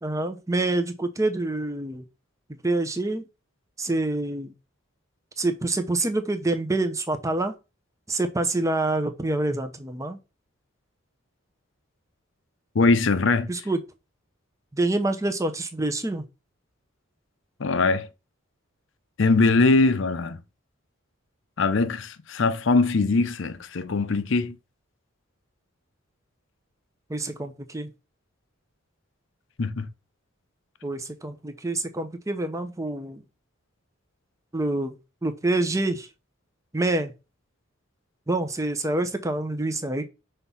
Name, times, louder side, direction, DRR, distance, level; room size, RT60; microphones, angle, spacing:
voice 1, 0.0-2.0 2.5-3.3 3.8-4.5 5.4-7.6 8.1-10.2 13.5-13.8 14.7-16.2 27.1-27.9 30.8-33.2 34.5-34.9 35.2-36.1 36.7-37.1 38.3-40.1, right 2 dB, 15° right, 0.7 m, -26 dB
voice 2, 12.7-13.5 17.6-18.1 19.2-20.4 21.6-24.6 29.6-29.9, left 3 dB, 60° left, 0.6 m, -21 dB
5.5 x 3.5 x 5.6 m
head